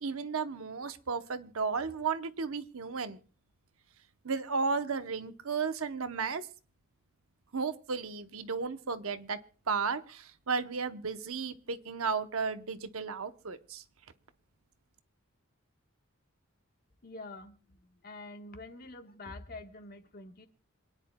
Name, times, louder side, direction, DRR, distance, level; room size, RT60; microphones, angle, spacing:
voice 1, 0.0-3.2 4.2-6.5 7.5-9.4 9.7-13.8, right 5 dB, 75° right, 9 dB, 0.9 m, -34 dB
voice 2, 17.0-20.5, left 2 dB, 45° left, 6 dB, 1.4 m, -47 dB
27.5 x 9.9 x 2.3 m, 0.40 s
head